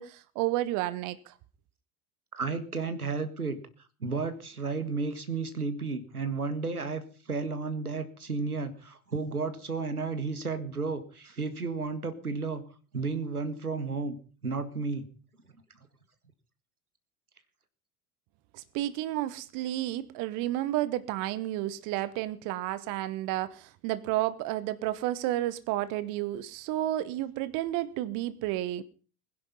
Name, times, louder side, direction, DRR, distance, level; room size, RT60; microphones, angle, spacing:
voice 1, 0.0-1.3 18.5-28.8, right 14 dB, 45° right, 1.1 m, -31 dB
voice 2, 2.3-3.6 4.0-7.0 7.3-12.6 12.9-14.2 14.4-15.0, right 4 dB, 85° right, 1.8 m, -32 dB
20.5 x 10.5 x 5.4 m
figure-of-eight pair, 70°, 43 cm